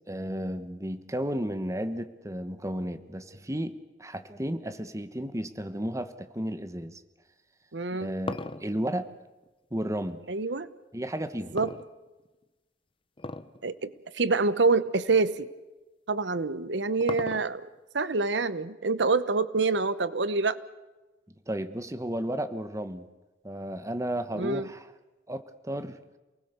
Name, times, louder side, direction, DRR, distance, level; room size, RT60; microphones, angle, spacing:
voice 1, 0.1-7.0 7.9-9.1 9.7-10.2 10.9-11.6 21.5-23.1 23.4-24.9 25.3-26.0, right 1 dB, 20° right, 10 dB, 1.2 m, -33 dB
sound 1, 7.7-10.2 11.6-12.4 13.2-13.6 13.9-14.0 14.8-14.9 16.3-17.8, left 2 dB, 30° left, 0.9 m, -37 dB
voice 2, 7.7-8.1 10.3-10.7 11.5-11.7 13.6-15.5 16.1-17.7 17.9-20.6 24.3-24.7, right 3 dB, 90° right, 15 dB, 1.0 m, -26 dB
28.5 x 19.5 x 6.8 m, 1.1 s
head